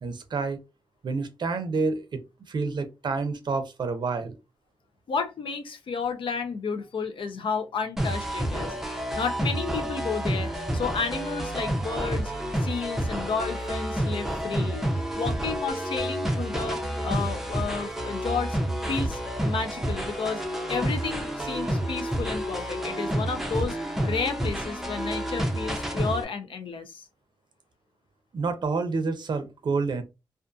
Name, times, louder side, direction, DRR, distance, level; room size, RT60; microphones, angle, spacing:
voice 1, 0.0-0.6 1.0-2.2 2.5-4.3 28.3-30.0, right 4 dB, 60° right, 0.5 m, -28 dB
voice 2, 5.1-12.3 12.6-14.9 15.1-18.6 18.9-20.4 20.7-23.8 24.0-27.1, left 5 dB, 75° left, 0.5 m, -32 dB
sound 1, 8.0-26.2, equal, 5° right, 0.5 m, -29 dB
2.5 x 2.4 x 2.3 m
wide cardioid pair, 165°, 9 cm